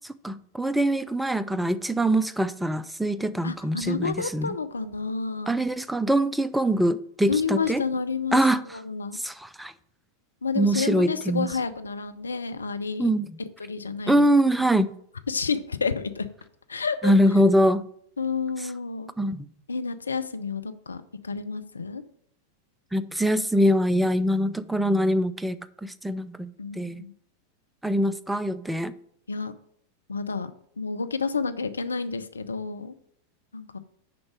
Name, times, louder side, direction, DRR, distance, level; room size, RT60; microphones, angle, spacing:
voice 1, 0.2-4.6 5.5-7.8 8.3-8.6 9.2-9.7 10.6-11.5 13.0-13.3 14.1-14.9 17.0-17.9 19.2-19.5 22.9-26.5 26.8-27.0 27.8-28.9, right 1 dB, 5° right, 0.4 m, -23 dB
voice 2, 3.4-5.7 7.3-8.4 8.7-9.2 10.4-13.1 13.6-14.2 14.6-14.8 15.3-16.3 16.7-17.1 18.2-19.1 19.7-22.0 26.6-27.1 29.3-29.5 30.1-30.5 30.8-32.9 33.5-33.8, left 5 dB, 75° left, 0.6 m, -30 dB
6.8 x 5.2 x 6.1 m
figure-of-eight pair, 90°, 0 cm